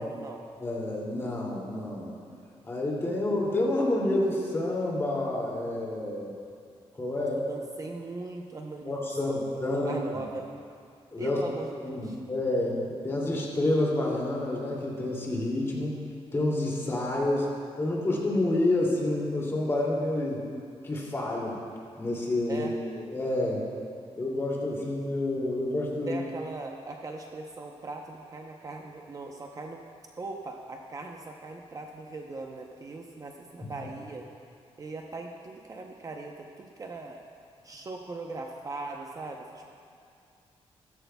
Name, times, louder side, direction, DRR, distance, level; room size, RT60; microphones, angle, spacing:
voice 1, 0.0-0.4 7.1-9.0 9.3-10.5 11.2-12.2 22.5-22.8 26.1-29.8 30.2-34.3 34.8-37.2 37.6-39.6, right 3 dB, 35° right, 2 dB, 0.7 m, -40 dB
voice 2, 0.6-2.1 2.6-6.4 7.0-7.4 8.8-10.2 11.1-11.4 11.8-16.0 16.3-17.5 17.8-20.4 20.8-21.6 22.0-22.7 23.0-23.6 24.2-26.2 33.6-33.7, left 1 dB, 25° left, -4 dB, 2.5 m, -28 dB
15.5 x 13.5 x 2.3 m, 2.4 s
cardioid pair, 125°, 11 cm